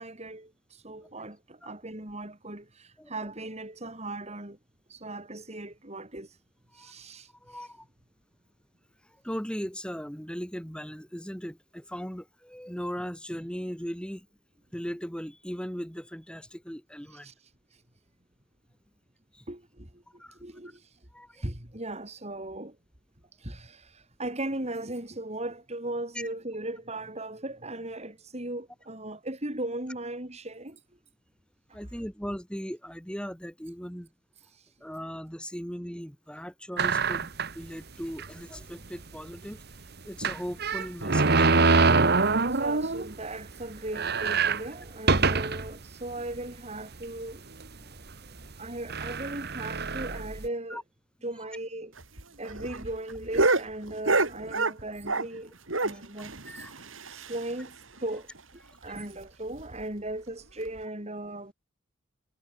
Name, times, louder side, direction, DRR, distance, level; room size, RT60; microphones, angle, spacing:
voice 1, 0.0-4.6 4.9-6.3 6.8-7.7 17.1-17.3 19.5-19.9 20.4-20.8 21.4-22.7 23.4-30.8 42.0-42.1 42.6-47.4 48.6-50.8 51.2-51.9 52.4-55.5 55.8-56.7 57.1-57.7 58.0-58.3 58.8-61.5, right 1 dB, 30° right, 4.5 m, -37 dB
voice 2, 7.4-7.8 9.2-14.3 14.7-17.3 19.3-19.4 20.2-20.4 21.1-21.4 26.1-26.3 31.7-34.1 34.8-39.6 40.0-41.5 45.1-45.2 50.7-50.8 55.9-56.0 56.4-56.7 59.0-59.1, equal, 5° left, 7.7 m, -38 dB
sound 1, 36.8-37.6 38.2-38.3 38.6-38.7 40.2-43.1 43.5-43.6 43.9-45.7 46.3-46.4 47.3-47.6 48.4-48.5 48.9-50.5, right 4 dB, 50° right, 1.6 m, -24 dB
sound 2, 52.0-55.4 55.7-57.7 58.0-58.1 58.4-58.5 58.8-59.0 59.5-59.8 60.7-60.8, right 3 dB, 70° right, 4.6 m, -28 dB
head